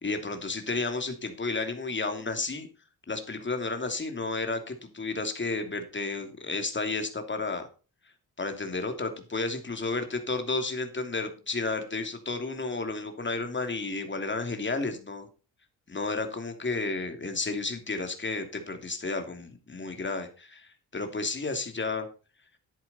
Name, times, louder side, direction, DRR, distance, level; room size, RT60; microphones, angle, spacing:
voice 1, 0.0-2.7 3.1-7.6 8.4-15.3 15.9-22.1, left 3 dB, 30° left, 6 dB, 2.9 m, -32 dB
10.0 x 9.4 x 4.3 m, 0.34 s
cardioid pair, 70°, 37 cm